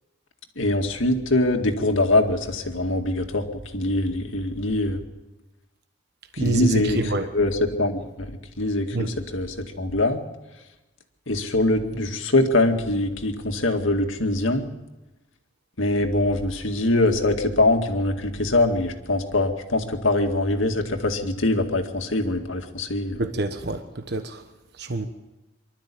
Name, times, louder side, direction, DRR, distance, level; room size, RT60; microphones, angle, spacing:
voice 1, 0.6-3.4 3.7-5.0 6.3-8.3 8.6-10.2 11.3-14.7 15.8-23.3, left 2 dB, 75° left, 5 dB, 2.1 m, -23 dB
voice 2, 6.4-6.7 7.0-7.3 8.9-9.1 23.2-23.8 24.1-24.4 24.8-25.1, right 2 dB, 55° right, 7 dB, 1.2 m, -26 dB
24.5 x 13.0 x 8.5 m, 1.1 s
head